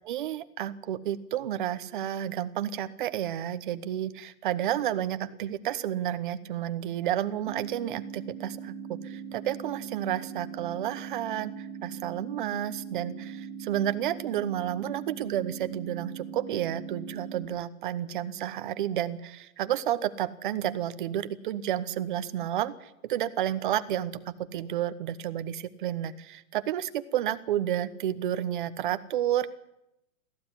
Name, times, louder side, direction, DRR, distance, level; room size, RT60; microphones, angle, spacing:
voice 1, 0.0-29.5, right 11 dB, 40° right, 12 dB, 1.1 m, -31 dB
sound 1, 7.5-17.5, right 7 dB, 15° right, 0.7 m, -40 dB
18.0 x 15.0 x 9.8 m, 0.86 s
hypercardioid pair, 175°, 41 cm